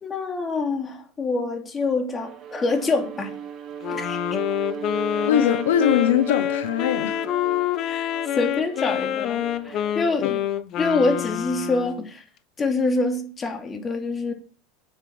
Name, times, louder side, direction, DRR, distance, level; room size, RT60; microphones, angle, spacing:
voice 1, 0.0-3.4 3.9-4.2 7.8-10.4 10.8-12.2 12.6-14.3, left 3 dB, 25° left, 3.1 m, -26 dB
Bowed string instrument, 2.1-10.5, right 8 dB, 40° right, 2.0 m, -36 dB
Wind instrument woodwind instrument, 3.8-12.1, left 12 dB, 45° left, 1.1 m, -27 dB
voice 2, 5.3-7.3 10.2-10.3, left 10 dB, 80° left, 1.1 m, -21 dB
9.2 x 8.4 x 7.2 m
supercardioid pair, 105°, 0 cm